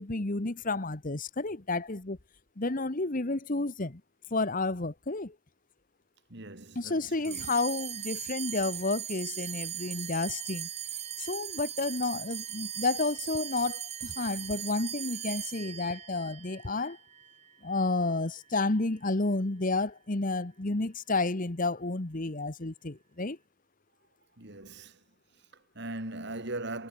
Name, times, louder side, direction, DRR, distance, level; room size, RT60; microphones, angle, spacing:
voice 1, 0.0-2.2 2.6-4.0 4.3-5.3 6.7-10.7 11.2-17.0 17.6-23.4, left 3 dB, 40° left, 1.2 m, -31 dB
voice 2, 6.3-7.5 24.4-25.0 25.3-26.9, right 2 dB, 55° right, 3.2 m, -40 dB
sound 1, 7.2-17.9, right 10 dB, 30° right, 6.1 m, -39 dB
head